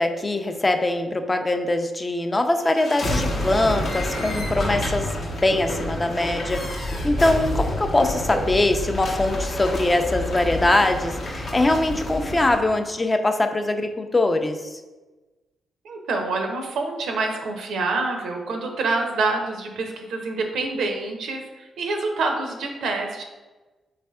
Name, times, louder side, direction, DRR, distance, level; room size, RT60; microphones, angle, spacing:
voice 1, 0.0-14.8, left 2 dB, 30° left, 7 dB, 0.4 m, -22 dB
sound 1, 2.6-12.6, left 1 dB, 60° left, 0.7 m, -28 dB
voice 2, 15.8-23.2, right 3 dB, 75° right, 3 dB, 0.4 m, -26 dB
3.5 x 3.2 x 2.2 m, 1.2 s
supercardioid pair, 45°, 0 cm